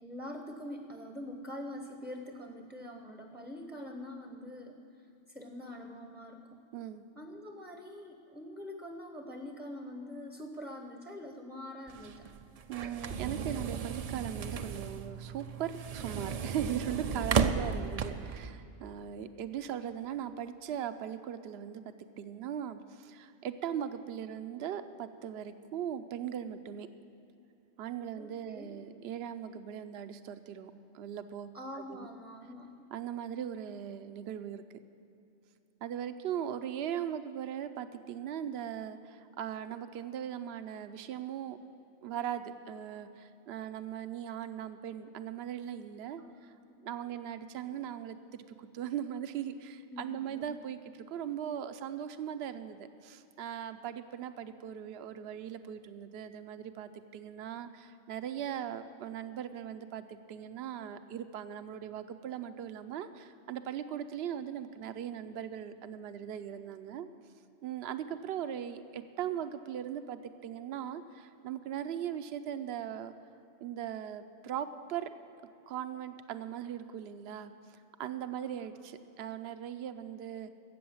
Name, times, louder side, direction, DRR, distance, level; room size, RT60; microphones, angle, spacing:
voice 1, 0.0-4.8 5.3-6.6 7.2-12.3 28.2-28.7 31.5-32.7 46.2-46.7 47.1-47.4 49.9-50.4 78.4-78.6, left 1 dB, ahead, 2 dB, 0.7 m, -44 dB
voice 2, 6.7-7.0 12.7-26.9 27.8-31.5 31.9-32.1 32.9-34.6 35.8-41.6 42.0-46.5 46.8-67.1 67.6-73.1 73.6-75.1 75.7-80.5, right 9 dB, 70° right, 10 dB, 0.9 m, -39 dB
sound 1, 11.9-18.4, right 6 dB, 50° right, 0.4 m, -34 dB
14.0 x 7.8 x 8.7 m, 2.8 s
omnidirectional pair, 1.2 m